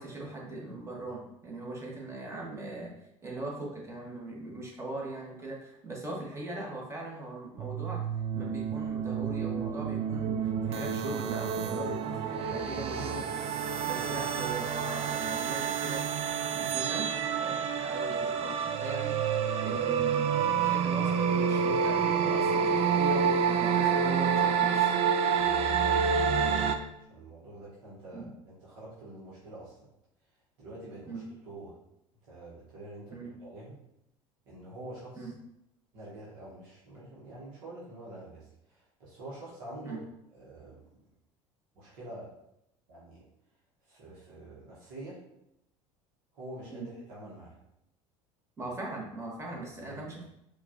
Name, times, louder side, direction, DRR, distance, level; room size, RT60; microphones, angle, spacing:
voice 1, 0.0-8.0 8.3-13.4 13.8-16.1 16.5-20.3 20.6-24.9 28.1-28.3 31.1-31.3 33.1-33.3 35.2-35.3 39.8-40.0 46.7-46.9 48.6-50.2, right 2 dB, 15° right, -3 dB, 1.1 m, -40 dB
sound 1, 7.6-26.7, right 7 dB, 35° right, 0.4 m, -28 dB
voice 2, 25.7-26.7 27.1-29.8 30.6-31.8 32.3-33.8 34.5-35.3 35.9-40.0 40.3-41.0 41.7-42.3 42.9-43.3 43.9-45.2 46.3-47.6 48.6-48.7 49.5-50.2, right 1 dB, 55° right, -7 dB, 1.0 m, -47 dB
4.5 x 2.3 x 2.6 m, 0.81 s
figure-of-eight pair, 70°, 18 cm